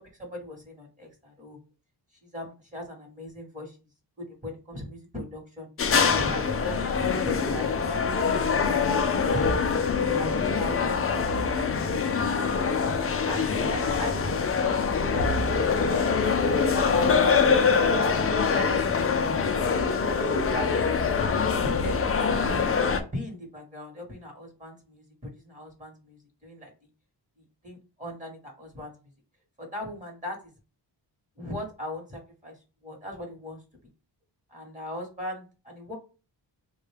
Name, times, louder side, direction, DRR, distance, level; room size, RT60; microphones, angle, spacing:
voice 1, 0.2-1.6 2.3-3.8 4.3-5.7 6.1-6.8 7.2-9.8 10.2-11.2 12.8-12.9 13.2-14.5 14.9-16.0 16.7-17.1 17.9-18.8 20.3-20.7 21.4-22.4 22.9-25.0 25.4-26.7 27.6-28.9 29.6-30.4 31.4-32.5 32.8-33.6 34.5-36.0, left 1 dB, 20° right, 0 dB, 1.1 m, -39 dB
sound 1, 5.8-23.0, left 5 dB, 35° left, 0.4 m, -24 dB
3.7 x 2.2 x 3.3 m, 0.33 s
wide cardioid pair, 150°, 42 cm